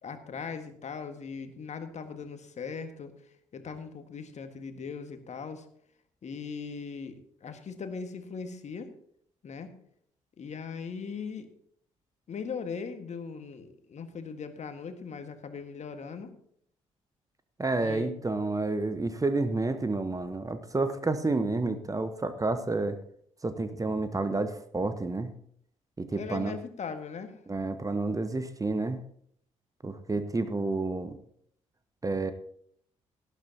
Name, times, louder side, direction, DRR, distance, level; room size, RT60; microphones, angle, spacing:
voice 1, 0.0-3.1 3.5-5.7 6.2-8.9 9.4-9.7 10.4-11.5 12.3-16.3 17.8-18.3 26.2-27.4, left 5 dB, 45° left, 8 dB, 1.7 m, -39 dB
voice 2, 17.6-23.0 23.4-25.3 26.0-26.6 27.5-29.0 29.8-31.2 32.0-32.3, right 3 dB, 20° right, 11 dB, 1.1 m, -30 dB
18.0 x 12.0 x 2.9 m, 0.66 s
figure-of-eight pair, 40°, 17 cm